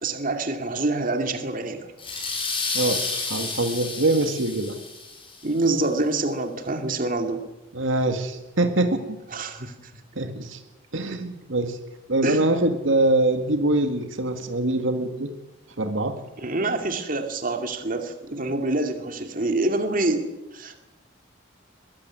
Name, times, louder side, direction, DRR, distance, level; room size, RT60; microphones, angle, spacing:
voice 1, 0.0-1.9 5.4-7.4 9.3-9.8 12.2-12.4 16.4-20.3 20.5-20.8, right 2 dB, 45° right, 6 dB, 2.4 m, -26 dB
sound 1, 2.0-5.4, left 3 dB, 25° left, 6.1 m, -30 dB
voice 2, 2.7-4.8 7.7-9.2 10.2-10.6 10.9-11.8 12.1-15.3 15.8-16.1, right 2 dB, 75° right, 7 dB, 2.0 m, -24 dB
22.0 x 15.5 x 9.6 m, 1.1 s
head